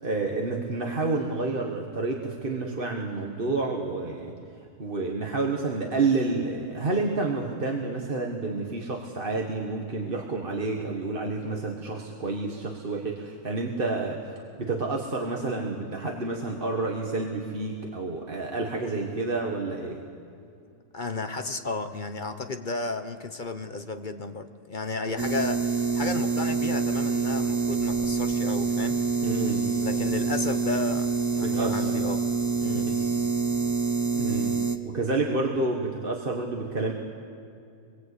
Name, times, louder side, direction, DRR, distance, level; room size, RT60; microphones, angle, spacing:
voice 1, 0.0-4.3 4.8-14.2 14.6-20.0 29.2-29.8 31.4-31.9 32.8-33.1 34.1-36.9, right 3 dB, 35° right, 0 dB, 1.7 m, -29 dB
voice 2, 20.9-29.0 29.8-32.2 32.6-32.9, left 3 dB, 35° left, 7 dB, 1.0 m, -33 dB
sound 1, 25.2-34.8, right 4 dB, 15° right, 0.6 m, -26 dB
25.0 x 22.0 x 8.5 m, 2.5 s
omnidirectional pair, 1.7 m